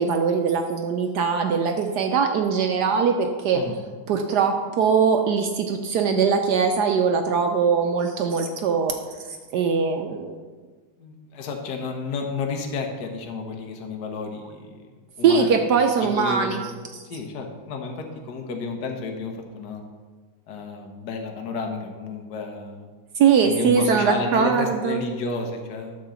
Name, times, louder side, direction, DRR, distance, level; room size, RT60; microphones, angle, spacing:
voice 1, 0.0-3.6 4.1-9.0 9.5-10.4 15.2-16.6 23.2-25.0, right 6 dB, 70° right, 4 dB, 1.0 m, -21 dB
voice 2, 11.0-14.9 15.2-15.6 16.0-16.6 17.1-19.8 20.5-22.9 23.4-26.0, left 4 dB, 60° left, 2 dB, 1.5 m, -31 dB
11.0 x 3.8 x 6.9 m, 1.4 s
omnidirectional pair, 2.2 m